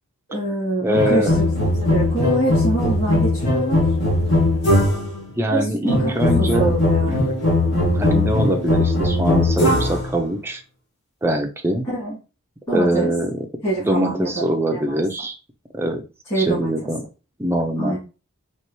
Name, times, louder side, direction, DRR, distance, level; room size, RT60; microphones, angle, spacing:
voice 1, 0.3-1.5 1.8-3.9 5.5-6.1 6.4-7.2 11.9-12.2 12.7-13.1 13.6-14.4 14.7-15.0 16.3-16.9 17.8-18.0, right 1 dB, 25° left, -10 dB, 2.5 m, -25 dB
voice 2, 0.8-1.3 5.4-6.7 7.1-7.2 7.9-10.6 11.2-11.9 12.7-13.3 13.8-15.4 15.7-16.0 16.4-17.0 17.4-18.0, equal, 10° right, 3 dB, 0.6 m, -23 dB
sound 1, 0.9-5.2 5.9-10.1, left 1 dB, 55° left, 1.7 m, -19 dB
4.5 x 3.0 x 3.0 m, 0.32 s
head